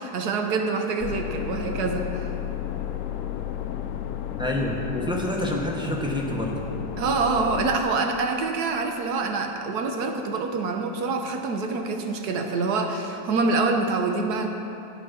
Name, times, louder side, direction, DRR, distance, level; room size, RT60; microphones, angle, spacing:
voice 1, 0.0-2.3 7.0-14.5, right 3 dB, 65° right, 4 dB, 1.3 m, -26 dB
sound 1, 1.0-7.8, left 10 dB, 80° left, 0.7 m, -32 dB
voice 2, 4.4-6.6, left 1 dB, 5° right, -2 dB, 0.7 m, -27 dB
10.5 x 8.5 x 5.6 m, 2.7 s
omnidirectional pair, 1.9 m